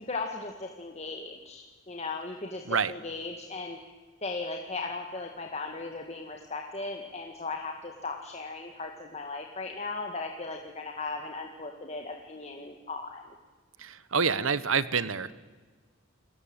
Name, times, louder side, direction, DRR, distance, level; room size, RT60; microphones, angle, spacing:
voice 1, 0.0-3.8 4.2-13.2, left 3 dB, 30° left, 3 dB, 2.0 m, -37 dB
voice 2, 13.8-15.4, right 5 dB, 75° right, 16 dB, 1.2 m, -27 dB
30.0 x 20.5 x 9.0 m, 1.4 s
head